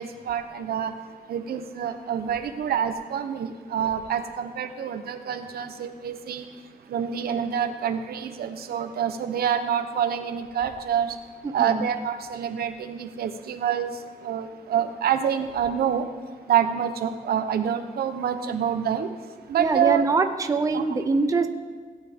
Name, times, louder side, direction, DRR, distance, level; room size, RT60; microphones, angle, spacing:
voice 1, 0.0-16.1 16.5-20.0 20.7-20.8, right 8 dB, 90° right, 8 dB, 0.8 m, -27 dB
voice 2, 19.6-21.5, right 4 dB, 20° right, 7 dB, 0.5 m, -23 dB
16.5 x 9.2 x 3.6 m, 1.5 s
wide cardioid pair, 155°, 16 cm